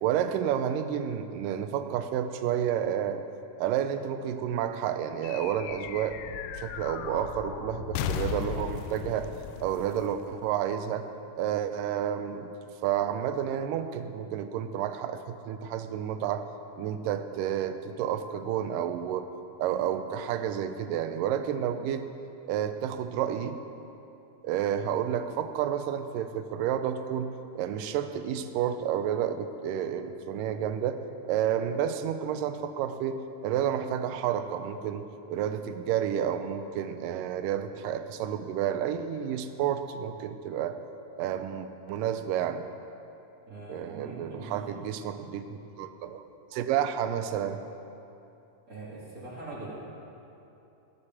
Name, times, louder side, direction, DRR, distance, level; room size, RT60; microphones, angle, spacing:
voice 1, 0.0-3.2 3.6-9.3 9.6-11.1 11.4-12.5 12.8-16.5 16.8-19.3 19.6-22.1 22.5-23.6 24.4-40.8 41.2-42.7 43.7-46.2 46.5-47.6, right 9 dB, 85° right, 9 dB, 2.2 m, -30 dB
sound 1, 5.2-10.9, left 8 dB, 80° left, 2.0 m, -37 dB
voice 2, 43.5-44.8 48.7-49.7, right 2 dB, 30° right, -7 dB, 2.3 m, -42 dB
15.0 x 6.5 x 7.0 m, 2.8 s
omnidirectional pair, 3.9 m